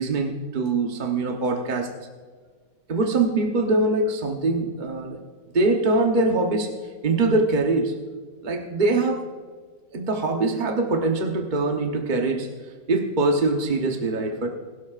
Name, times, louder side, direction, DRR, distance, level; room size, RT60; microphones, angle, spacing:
voice 1, 0.0-1.9 2.9-5.2 5.5-6.7 7.0-7.9 8.4-9.2 9.9-12.5 12.9-14.5, right 2 dB, 40° right, 2 dB, 0.7 m, -23 dB
21.0 x 12.5 x 2.5 m, 1.5 s
omnidirectional pair, 2.1 m